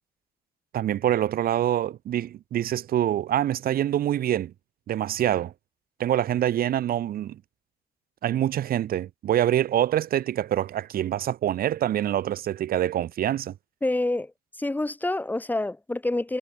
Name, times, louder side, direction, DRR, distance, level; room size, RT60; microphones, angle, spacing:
voice 1, 0.7-4.5 4.9-5.5 6.0-7.4 8.2-13.5, right 11 dB, 60° right, 4.4 m, -25 dB
voice 2, 13.8-14.3 14.6-16.4, left 2 dB, 10° left, 3.2 m, -27 dB
cardioid pair, 110°, 17 cm